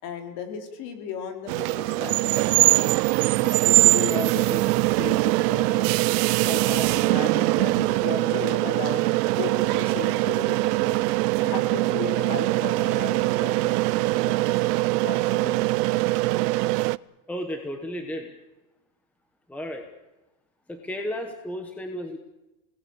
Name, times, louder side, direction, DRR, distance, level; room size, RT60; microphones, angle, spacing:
voice 1, 0.0-3.0 3.4-6.0 6.4-11.0 11.4-15.7, left 7 dB, 45° left, 5 dB, 3.9 m, -36 dB
sound 1, 1.5-17.0, right 20 dB, 85° right, 0.7 m, -22 dB
voice 2, 17.3-18.3 19.5-19.8 20.7-22.2, equal, 5° left, 5 dB, 1.2 m, -33 dB
29.5 x 19.0 x 6.9 m, 1.0 s
supercardioid pair, 180°, 46 cm